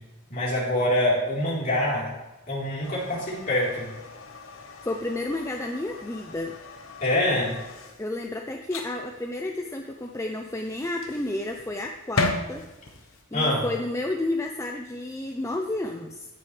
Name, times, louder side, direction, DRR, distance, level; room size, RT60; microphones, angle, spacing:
voice 1, 0.3-2.1 2.5-3.9 7.0-7.6 13.3-13.7, left 1 dB, 40° left, -6 dB, 3.8 m, -25 dB
sound 1, 2.8-13.2, left 2 dB, 70° left, 1.0 m, -37 dB
voice 2, 4.8-6.6 8.0-12.7 13.3-16.3, left 2 dB, 15° left, 3 dB, 0.5 m, -31 dB
16.5 x 6.5 x 3.3 m, 1.1 s
head